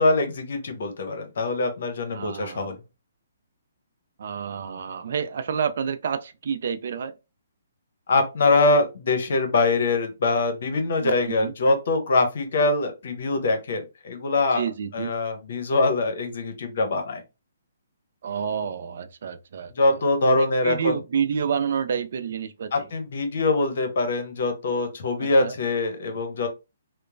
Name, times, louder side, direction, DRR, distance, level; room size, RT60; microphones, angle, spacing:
voice 1, 0.0-2.8 8.1-14.6 14.9-17.2 19.8-20.9 22.7-26.5, left 2 dB, 60° left, 0.8 m, -23 dB
voice 2, 2.1-2.7 4.2-7.1 11.0-11.5 14.5-15.1 18.2-20.0 20.4-22.9 25.2-25.5, right 7 dB, 60° right, 0.3 m, -29 dB
3.0 x 2.0 x 2.5 m
hypercardioid pair, 145°, 0 cm